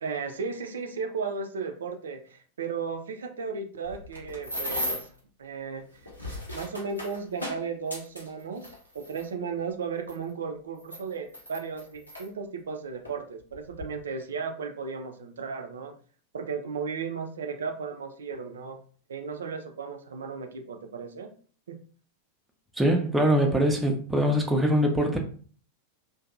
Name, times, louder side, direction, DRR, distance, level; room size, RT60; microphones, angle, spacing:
voice 1, 0.0-5.1 5.4-5.8 6.5-8.7 8.9-15.9 16.3-18.8 19.1-21.3 21.7-21.8, right 5 dB, 65° right, 0.4 m, -35 dB
sound 1, 3.8-5.2 5.9-9.3 10.1-10.2 10.8-12.3 13.0-13.2 13.5-13.9, equal, 85° left, 0.9 m, -36 dB
voice 2, 22.8-25.2, equal, 5° right, 0.5 m, -23 dB
2.6 x 2.2 x 2.4 m
figure-of-eight pair, 90°, 0 cm